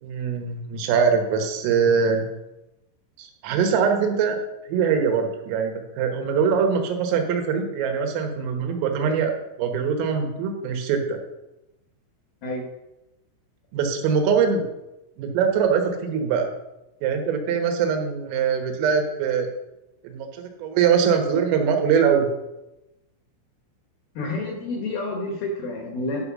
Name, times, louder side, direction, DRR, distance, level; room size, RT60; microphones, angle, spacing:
voice 1, 0.0-2.3 3.2-4.4 4.7-11.2 13.7-14.7 15.2-16.5 17.0-19.5 20.0-22.3, right 6 dB, 85° right, 4 dB, 3.9 m, -22 dB
voice 2, 24.2-26.3, left 2 dB, 65° left, 1 dB, 2.6 m, -29 dB
11.0 x 5.6 x 6.1 m, 0.94 s
omnidirectional pair, 5.8 m